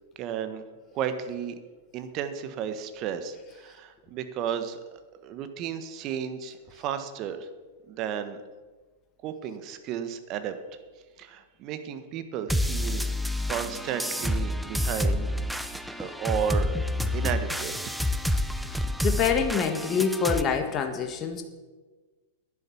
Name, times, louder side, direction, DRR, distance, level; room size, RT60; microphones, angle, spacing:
voice 1, 0.2-0.6 0.9-1.5 1.9-4.8 5.1-7.5 7.9-8.4 9.2-10.5 11.2-13.1 13.5-15.3 15.6-16.8 17.1-17.9, right 8 dB, 40° right, 9 dB, 1.5 m, -33 dB
sound 1, 12.5-20.4, left 1 dB, ahead, 0.8 m, -28 dB
voice 2, 18.7-21.4, left 6 dB, 30° left, 6 dB, 1.5 m, -26 dB
10.5 x 10.5 x 7.2 m, 1.3 s
hypercardioid pair, 100°, 0 cm